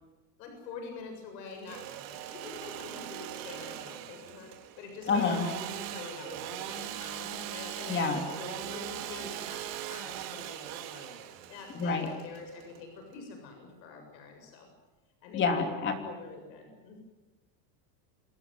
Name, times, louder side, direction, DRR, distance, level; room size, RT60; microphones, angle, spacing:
voice 1, 0.4-1.8 2.1-4.5 4.8-11.2 11.5-14.7 15.2-15.8 16.0-17.0, left 5 dB, 85° left, 3 dB, 7.5 m, -45 dB
Engine / Sawing, 1.5-13.1, right 11 dB, 55° right, 2.7 m, -41 dB
voice 2, 5.1-5.4 7.9-8.2 11.7-12.1 15.3-16.0, left 4 dB, 20° left, 5 dB, 3.1 m, -27 dB
27.5 x 18.5 x 9.5 m, 1.1 s
supercardioid pair, 170°, 49 cm